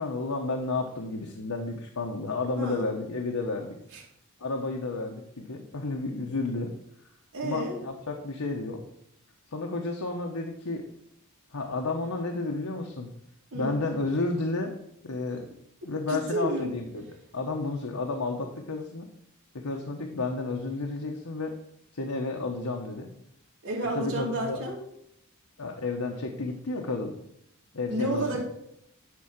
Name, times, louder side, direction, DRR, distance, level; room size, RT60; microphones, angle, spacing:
voice 1, 0.0-3.8 4.4-6.7 7.4-8.8 9.5-10.9 11.5-13.1 13.5-14.7 15.0-15.5 15.8-17.0 17.3-19.1 19.5-21.5 21.9-23.1 23.9-24.6 25.6-27.2 27.7-28.4, left 3 dB, 80° left, 2 dB, 1.1 m, -31 dB
voice 2, 2.6-2.9 3.9-4.0 7.3-7.8 13.5-13.7 16.1-16.7 23.6-24.8 27.9-28.4, right 1 dB, 65° right, -2 dB, 2.6 m, -30 dB
11.0 x 3.8 x 7.4 m, 0.75 s
head